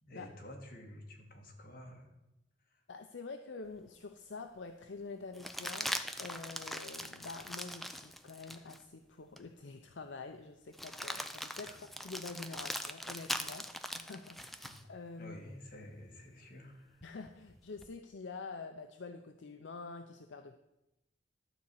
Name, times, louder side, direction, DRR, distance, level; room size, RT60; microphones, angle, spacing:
voice 1, 0.0-2.1 2.7-2.8 11.6-11.8 14.6-14.9 15.2-17.0, left 1 dB, 50° left, 0 dB, 2.0 m, -51 dB
voice 2, 2.9-5.9 6.2-11.7 12.0-15.4 17.0-20.6, left 4 dB, 70° left, 6 dB, 0.6 m, -47 dB
sound 1, 3.8-3.9 5.3-8.8 9.4-9.5 10.7-14.8 17.0-17.9, equal, ahead, 0.4 m, -41 dB
12.0 x 4.2 x 7.8 m, 0.92 s
head